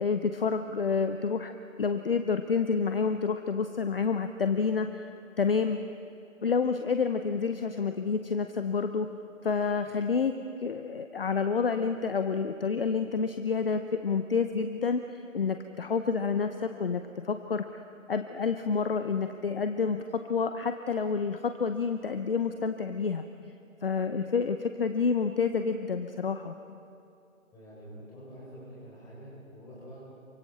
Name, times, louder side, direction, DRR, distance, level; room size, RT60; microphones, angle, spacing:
voice 1, 0.0-1.5 1.8-5.0 5.4-5.8 6.4-9.1 9.4-10.3 10.6-15.0 15.3-17.7 18.1-20.0 20.3-23.2 23.8-26.5, left 5 dB, 45° left, 8 dB, 0.8 m, -28 dB
voice 2, 27.5-30.0, equal, 10° left, -6 dB, 5.1 m, -47 dB
28.0 x 24.5 x 4.0 m, 2.7 s
figure-of-eight pair, 145°, 40 cm